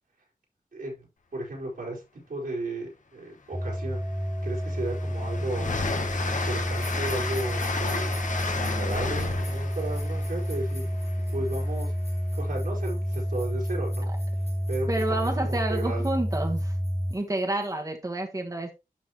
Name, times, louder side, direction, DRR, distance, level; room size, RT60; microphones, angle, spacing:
voice 1, 0.7-1.1 1.3-4.0 4.4-5.7 6.2-8.2 8.6-10.9 11.3-11.9 12.4-14.1 14.7-16.1, right 2 dB, 85° right, -4 dB, 4.4 m, -35 dB
Train, 3.5-3.6 4.0-11.8, left 4 dB, 60° left, 1.2 m, -33 dB
sound 1, 3.5-17.1, equal, ahead, 0.7 m, -30 dB
sound 2, 6.7-17.7, left 2 dB, 45° left, 1.9 m, -50 dB
voice 2, 14.9-16.8 17.1-18.7, right 2 dB, 25° right, 2 dB, 1.4 m, -29 dB
12.0 x 4.1 x 3.1 m, 0.25 s
wide cardioid pair, 95°, 14 cm